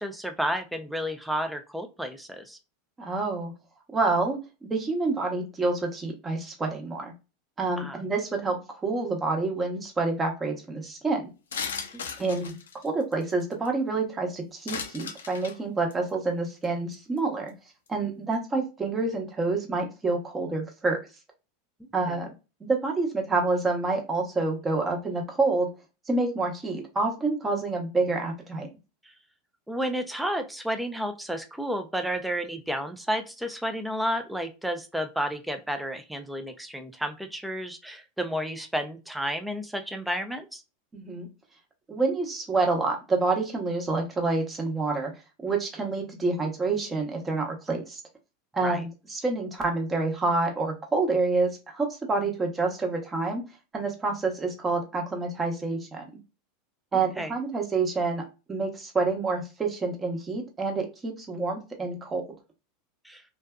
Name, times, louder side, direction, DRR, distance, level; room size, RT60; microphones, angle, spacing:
voice 1, 0.0-2.6 7.8-8.0 11.9-12.0 22.1-22.2 29.0-29.1 29.7-40.6 48.6-48.8 57.2-57.3 63.0-63.2, equal, 5° right, 7 dB, 0.4 m, -31 dB
voice 2, 3.0-3.5 3.9-7.1 7.6-11.3 12.2-12.5 12.8-17.5 17.9-21.0 21.9-22.3 22.6-25.7 26.1-28.7 40.9-41.3 41.9-45.1 45.4-48.0 48.5-53.4 53.7-56.1 56.9-62.2, right 3 dB, 20° right, 2 dB, 0.8 m, -28 dB
sound 1, 11.5-13.7 14.7-15.6 15.9-16.1 16.6-16.7 16.9-17.2 17.5-17.6, left 6 dB, 90° left, 0.4 m, -36 dB
2.5 x 2.3 x 2.2 m, 0.29 s
hypercardioid pair, 100°, 0 cm